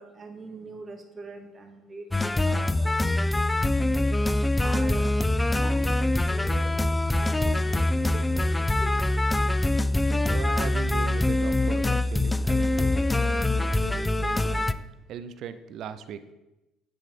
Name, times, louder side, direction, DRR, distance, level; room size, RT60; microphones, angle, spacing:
voice 1, 0.0-2.9 4.6-5.1 5.5-6.7 7.1-9.0, right 3 dB, 35° right, 4 dB, 1.4 m, -42 dB
sound 1, 2.1-14.7, left 2 dB, 15° left, 0.3 m, -24 dB
voice 2, 10.0-14.8 15.1-16.2, right 8 dB, 65° right, 12 dB, 0.5 m, -39 dB
9.8 x 3.8 x 3.6 m, 0.98 s
hypercardioid pair, 60°, 0 cm